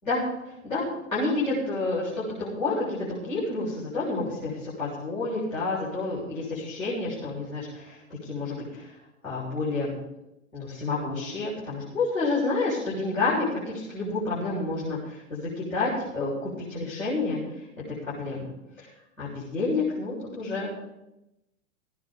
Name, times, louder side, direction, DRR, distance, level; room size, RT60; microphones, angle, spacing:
voice 1, 0.0-8.9 9.2-10.0 10.5-17.6 18.1-18.5 18.8-18.9 19.2-20.7, left 3 dB, 80° left, -9 dB, 7.4 m, -29 dB
17.5 x 9.7 x 5.5 m, 0.90 s
figure-of-eight pair, 95°, 40 cm